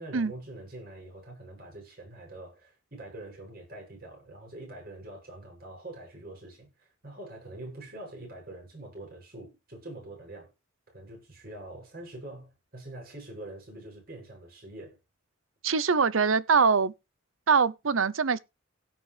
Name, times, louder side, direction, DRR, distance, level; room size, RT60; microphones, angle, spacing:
voice 1, 0.0-10.5 10.9-15.0, right 1 dB, 50° right, 7.6 m, -44 dB
voice 2, 15.6-16.9 17.5-18.4, right 5 dB, 80° right, 0.7 m, -23 dB
17.0 x 6.5 x 3.4 m
head